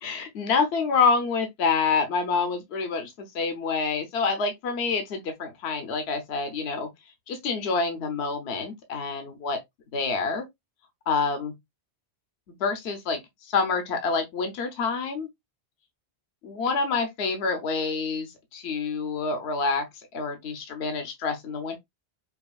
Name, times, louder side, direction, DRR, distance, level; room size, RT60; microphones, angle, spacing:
voice 1, 0.0-6.9 7.3-9.6 9.9-10.4 11.1-11.5 12.6-15.3 16.4-19.9 20.1-21.8, left 4 dB, 75° left, 1.0 m, -27 dB
5.3 x 2.4 x 2.3 m
omnidirectional pair, 1.1 m